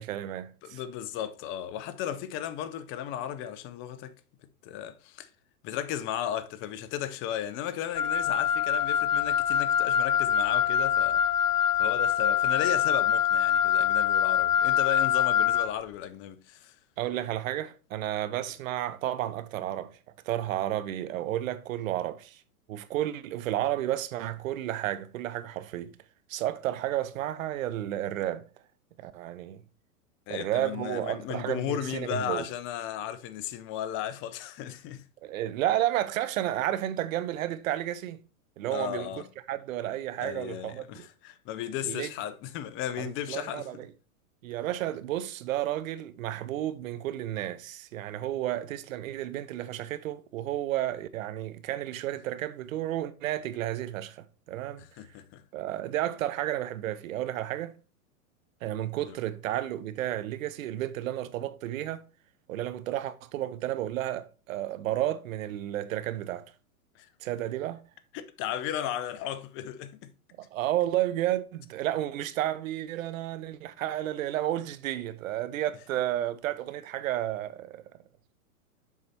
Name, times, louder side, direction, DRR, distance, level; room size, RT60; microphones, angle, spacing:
voice 1, 0.0-0.8 17.0-20.0 20.3-22.4 22.7-25.9 26.3-28.5 29.0-29.6 30.3-32.5 35.2-38.2 38.6-39.1 39.5-41.1 41.9-42.1 43.0-43.9 44.4-54.9 55.5-57.7 58.6-62.0 62.5-66.5 67.2-67.8 70.4-77.8, right 13 dB, 60° right, 0.8 m, -32 dB
voice 2, 0.6-4.1 4.6-5.3 5.6-11.2 11.8-16.8 30.3-35.0 38.7-39.3 40.2-43.7 54.8-55.4 59.1-59.2 67.0-67.1 68.1-70.1, left 10 dB, 25° left, 0.7 m, -35 dB
Wind instrument woodwind instrument, 8.0-15.7, left 9 dB, 80° left, 0.8 m, -24 dB
7.2 x 4.7 x 4.2 m
hypercardioid pair, 130°, 45 cm